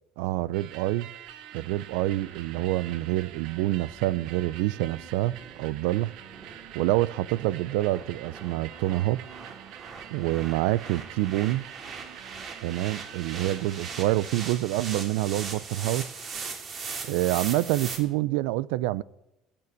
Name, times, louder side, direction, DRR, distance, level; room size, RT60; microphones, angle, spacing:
voice 1, 0.2-1.1 1.5-6.1 6.7-9.2 10.1-11.7 12.6-16.1 17.0-19.0, right 16 dB, 85° right, 0.5 m, -27 dB
sound 1, 0.5-14.4, right 11 dB, 70° right, 1.1 m, -45 dB
sound 2, 3.3-18.0, right 5 dB, 40° right, 2.9 m, -40 dB
18.5 x 6.9 x 8.4 m
cardioid pair, 130°, 0 cm